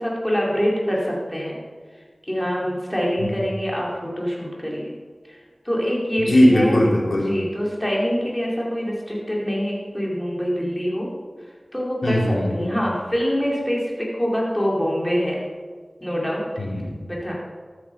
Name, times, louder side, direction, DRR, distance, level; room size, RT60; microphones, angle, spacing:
voice 1, 0.0-1.6 2.3-5.0 5.3-5.4 5.6-6.8 7.1-11.1 11.7-15.4 16.0-16.5 17.1-17.3, equal, 15° left, -4 dB, 4.7 m, -25 dB
voice 2, 6.3-7.3 12.0-12.7 16.6-17.0, left 1 dB, 80° left, -3 dB, 3.9 m, -19 dB
13.5 x 12.0 x 5.5 m, 1.5 s
wide cardioid pair, 40°, 0 cm